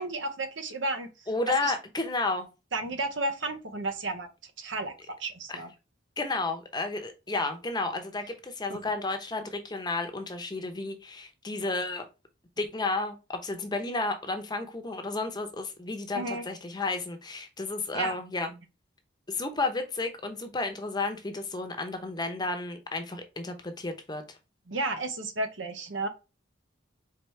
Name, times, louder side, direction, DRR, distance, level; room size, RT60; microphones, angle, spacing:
voice 1, 0.0-1.3 1.6-1.7 2.7-4.9 5.2-5.7 8.7-8.8 16.1-16.5 17.9-18.1 24.7-26.1, right 2 dB, 70° right, 0.9 m, -33 dB
voice 2, 1.3-2.5 5.5-5.6 6.2-12.0 12.6-18.6 19.3-24.2, left 3 dB, 20° left, 0.8 m, -32 dB
4.7 x 3.5 x 3.2 m
head